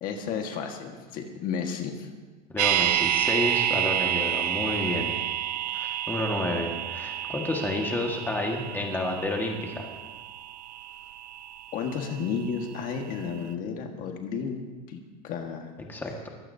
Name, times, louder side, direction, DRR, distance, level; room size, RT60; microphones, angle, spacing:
voice 1, 0.0-2.1 11.7-14.6 14.9-15.7, left 6 dB, 40° left, 3 dB, 1.6 m, -32 dB
voice 2, 2.5-5.1 5.7-9.9 15.9-16.3, left 2 dB, 10° left, 1 dB, 1.7 m, -30 dB
sound 1, 2.6-12.6 12.9-13.0, right 11 dB, 85° right, 0.7 m, -29 dB
22.5 x 15.5 x 2.8 m, 1.3 s
supercardioid pair, 145°, 21 cm